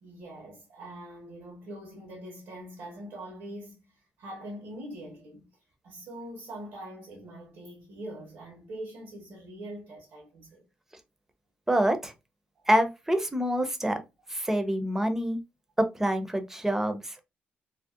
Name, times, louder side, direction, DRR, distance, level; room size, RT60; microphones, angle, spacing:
voice 1, 0.0-3.9 4.2-5.5 5.8-10.6, right 1 dB, 90° right, 1.0 m, -43 dB
voice 2, 11.7-12.1 12.7-14.0 14.3-15.4 15.8-17.2, equal, 10° right, 0.5 m, -26 dB
2.5 x 2.0 x 2.4 m
cardioid pair, 100°, 4 cm